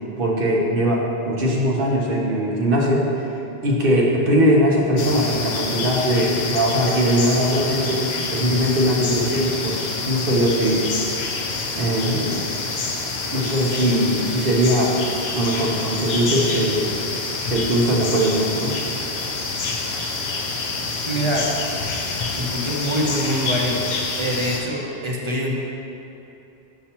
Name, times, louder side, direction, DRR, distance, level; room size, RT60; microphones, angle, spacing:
voice 1, 0.2-3.1 3.6-8.0 8.3-9.7 10.0-10.8 11.7-12.4 13.3-14.9 15.3-16.9 17.5-18.8, equal, 60° right, -3 dB, 1.1 m, -20 dB
sound 1, 5.0-24.6, left 3 dB, 75° left, 0.9 m, -27 dB
voice 2, 21.1-21.5 22.4-23.8 24.2-25.5, equal, 35° right, -2 dB, 0.7 m, -24 dB
6.8 x 5.3 x 2.9 m, 2.8 s
omnidirectional pair, 1.1 m